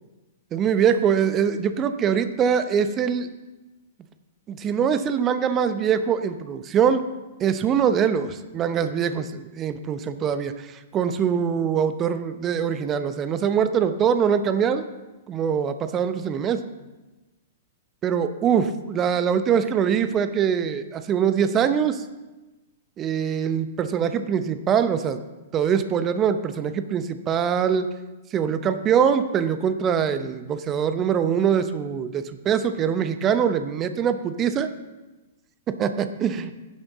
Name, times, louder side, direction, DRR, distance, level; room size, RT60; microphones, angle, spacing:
voice 1, 0.5-3.3 4.5-7.0 7.4-10.7 10.9-14.9 15.3-16.6 18.0-22.0 23.0-25.2 25.5-27.9 28.3-34.7 35.8-36.5, right 7 dB, 25° right, 11 dB, 0.7 m, -23 dB
11.0 x 8.7 x 3.9 m, 1.1 s
figure-of-eight pair, 105°, 0 cm